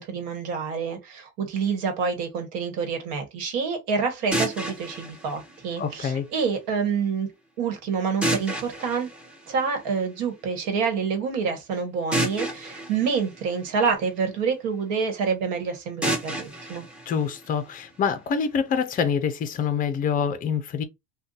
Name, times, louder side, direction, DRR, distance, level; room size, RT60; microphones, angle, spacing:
voice 1, 0.0-7.3 7.6-9.1 9.5-16.8, right 5 dB, 65° right, 1.3 m, -27 dB
sound 1, 4.3-6.3 8.2-10.2 12.1-14.3 16.0-18.0, right 1 dB, 5° right, 0.8 m, -31 dB
voice 2, 5.8-6.3 17.1-20.8, left 7 dB, 25° left, 0.5 m, -26 dB
2.6 x 2.3 x 3.9 m
cardioid pair, 145°, 33 cm